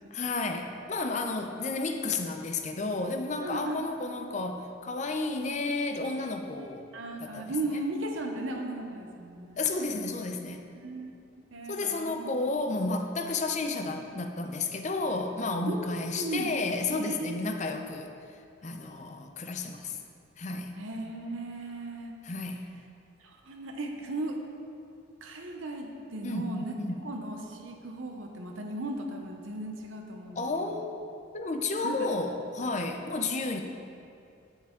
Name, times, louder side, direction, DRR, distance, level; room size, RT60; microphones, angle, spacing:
voice 1, 0.1-6.8 7.2-7.8 9.6-10.6 11.7-18.1 18.6-20.0 20.4-20.8 22.2-22.7 26.2-27.0 30.4-31.0 31.3-33.6, left 3 dB, 35° left, 5 dB, 0.5 m, -32 dB
voice 2, 3.4-3.8 5.4-6.1 6.6-6.7 6.9-9.6 10.7-11.1 11.5-12.3 15.7-16.5 16.9-17.6 20.8-22.1 23.2-24.4 25.2-30.8 31.8-32.0 32.6-32.7, right 2 dB, 75° right, 2 dB, 0.8 m, -36 dB
9.2 x 7.2 x 3.7 m, 2.5 s
head